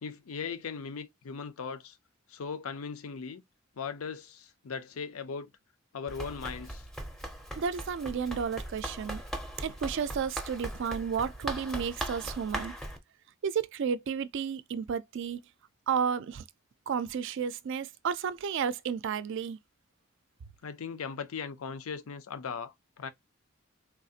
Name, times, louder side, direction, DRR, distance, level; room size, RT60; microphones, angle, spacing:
voice 1, 0.0-2.0 2.3-3.4 3.8-5.5 5.9-6.9 20.6-23.1, left 5 dB, 85° left, 0.5 m, -38 dB
Run, 6.1-13.0, right 1 dB, ahead, 0.5 m, -39 dB
voice 2, 7.6-9.2 9.6-12.7 13.4-15.4 15.9-16.4 16.9-19.6, right 7 dB, 60° right, 0.4 m, -32 dB
3.4 x 2.4 x 2.6 m
head